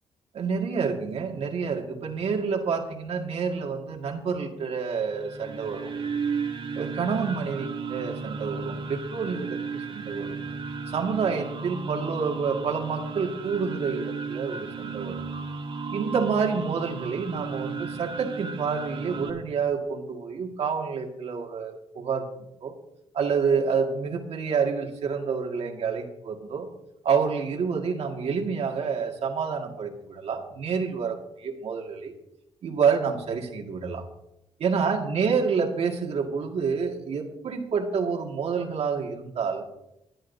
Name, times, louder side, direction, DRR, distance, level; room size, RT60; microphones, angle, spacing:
voice 1, 0.3-5.9 6.7-10.5 10.9-15.2 15.9-22.3 22.6-22.7 23.1-26.7 27.0-32.1 32.6-34.0 34.6-39.6, right 5 dB, 65° right, 2 dB, 2.0 m, -28 dB
sound 1, 5.0-19.3, right 5 dB, 50° right, 2.2 m, -34 dB
20.0 x 11.0 x 2.7 m, 0.86 s
cardioid pair, 75°, 11 cm